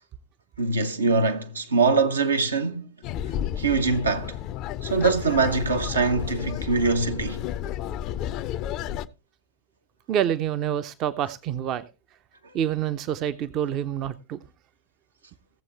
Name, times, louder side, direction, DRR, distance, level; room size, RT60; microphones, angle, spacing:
voice 1, 0.6-2.9 3.6-4.4 4.8-7.4, right 4 dB, 75° right, 1.0 m, -23 dB
sound 1, 3.0-9.1, left 10 dB, 40° left, 0.5 m, -32 dB
voice 2, 10.1-11.8 12.5-14.4, right 10 dB, 35° right, 0.6 m, -27 dB
17.0 x 7.4 x 3.3 m
figure-of-eight pair, 90°, 0 cm